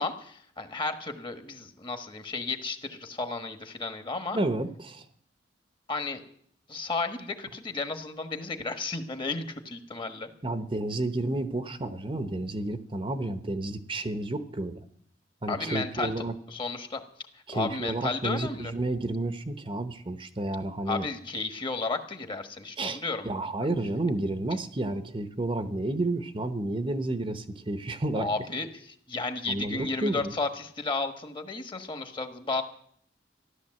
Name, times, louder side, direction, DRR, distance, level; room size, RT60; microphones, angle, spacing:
voice 1, 0.0-4.4 5.9-6.2 6.7-10.3 15.5-16.1 16.5-17.0 17.5-18.7 20.9-23.5 28.1-28.7 29.1-32.6, left 3 dB, 25° left, 8 dB, 1.3 m, -33 dB
voice 2, 4.3-5.0 10.4-14.8 15.4-16.3 17.5-21.1 22.8-28.3 29.5-30.3, right 2 dB, 30° right, 10 dB, 0.9 m, -31 dB
14.5 x 11.5 x 7.6 m, 0.65 s
head